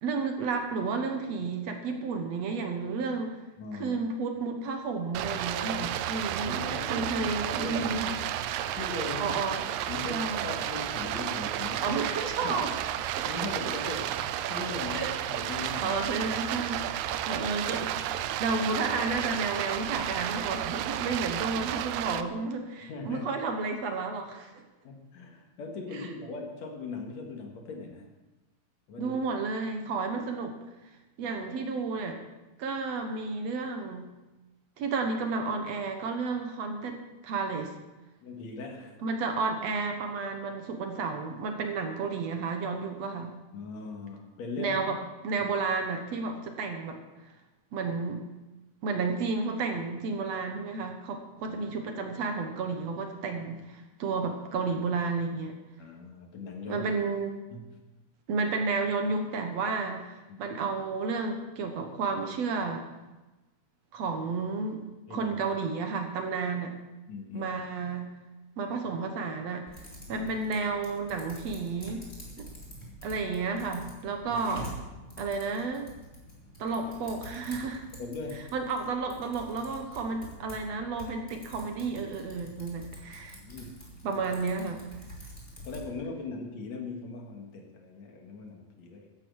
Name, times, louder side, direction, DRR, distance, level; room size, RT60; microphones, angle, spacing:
voice 1, 0.0-3.4 3.8-8.2 9.2-9.6 10.1-10.5 11.8-12.7 13.2-13.3 14.9-15.1 15.8-16.8 17.3-18.0 18.4-24.5 25.9-26.1 29.0-30.6 31.2-32.2 32.6-34.1 34.8-37.7 39.0-43.4 44.6-45.0 45.2-47.0 47.7-48.2 48.8-53.6 54.0-55.5 56.7-57.3 58.3-62.9 63.9-64.8 65.1-66.7 67.3-68.1 68.6-69.7 70.1-72.1 72.4-72.5 73.0-74.7 75.2-75.9 76.6-77.8 78.5-83.4 84.0-84.8, right 4 dB, 65° right, 4 dB, 2.2 m, -32 dB
voice 2, 3.6-4.0 5.6-5.9 6.4-8.0 8.8-12.0 12.4-12.6 13.2-16.0 21.5-21.6 22.9-23.3 24.8-28.1 28.9-29.2 31.2-31.4 38.2-39.0 43.5-44.8 51.5-51.6 54.1-54.2 55.8-56.9 57.5-57.8 60.3-60.5 65.1-65.3 67.1-67.5 70.1-70.3 78.0-78.5 83.3-83.8 84.2-84.3 85.6-89.1, left 3 dB, 65° left, 2 dB, 2.9 m, -39 dB
Stream, 5.1-22.2, right 11 dB, 80° right, 2.0 m, -32 dB
Typing, 69.7-85.9, equal, 20° left, 3.0 m, -47 dB
14.5 x 10.5 x 4.7 m, 1.1 s
omnidirectional pair, 3.4 m